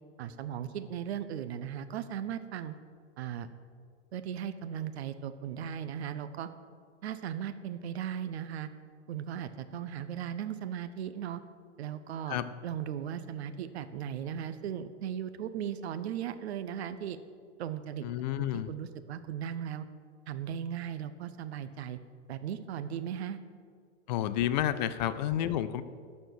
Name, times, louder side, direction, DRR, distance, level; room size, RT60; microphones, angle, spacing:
voice 1, 0.2-2.7 3.2-3.5 4.1-6.5 7.0-8.7 9.1-11.4 11.8-12.4 12.6-17.2 17.6-18.0 18.4-19.8 20.3-22.0 22.3-23.4, right 9 dB, 60° right, 12 dB, 0.7 m, -37 dB
voice 2, 18.0-18.7 24.1-25.8, left 11 dB, 40° left, 13 dB, 0.5 m, -30 dB
12.5 x 4.4 x 6.2 m, 2.1 s
hypercardioid pair, 135°, 36 cm